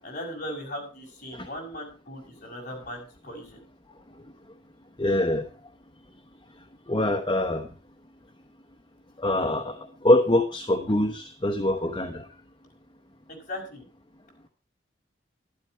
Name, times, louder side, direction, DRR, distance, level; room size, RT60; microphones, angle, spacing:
voice 1, 0.0-3.6 13.3-13.8, equal, 45° left, 0 dB, 5.9 m, -38 dB
voice 2, 5.0-5.4 6.9-7.7 9.2-12.3, left 1 dB, 25° left, 6 dB, 0.9 m, -24 dB
12.5 x 12.0 x 4.4 m, 0.34 s
head